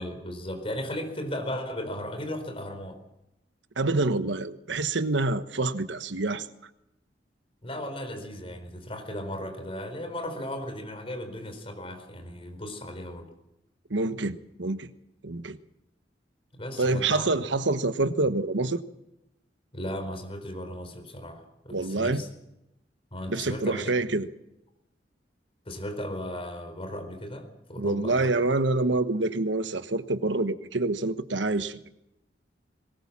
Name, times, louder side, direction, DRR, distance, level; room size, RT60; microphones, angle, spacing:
voice 1, 0.0-3.0 7.6-13.3 16.6-17.3 19.7-21.5 21.8-22.3 23.1-23.9 25.6-28.4, left 1 dB, 30° left, 6 dB, 4.6 m, -36 dB
voice 2, 3.8-6.5 13.9-14.9 15.2-15.6 16.8-18.8 21.7-22.2 23.3-24.3 27.8-31.9, right 2 dB, 85° right, 11 dB, 1.2 m, -27 dB
22.0 x 20.0 x 7.4 m, 0.88 s
head